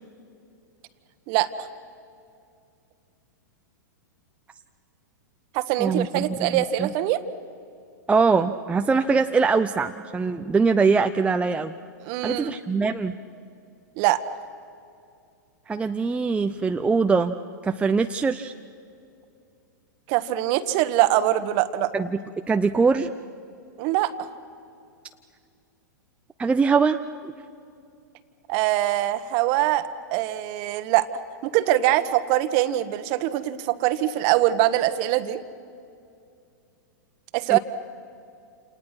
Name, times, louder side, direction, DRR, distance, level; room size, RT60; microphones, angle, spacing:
voice 1, 1.3-1.7 5.5-7.2 12.0-12.6 14.0-14.2 20.1-21.9 23.8-24.3 28.5-31.1 31.4-35.4 37.3-37.6, right 14 dB, 45° right, 11 dB, 1.4 m, -23 dB
voice 2, 5.8-6.9 8.1-11.7 12.2-13.1 15.7-17.3 17.6-18.5 21.9-22.1 22.5-23.1 26.4-27.0 27.2-27.3 37.5-37.6, right 4 dB, 10° right, 7 dB, 0.7 m, -22 dB
29.0 x 28.0 x 6.1 m, 2.5 s
hypercardioid pair, 105°, 10 cm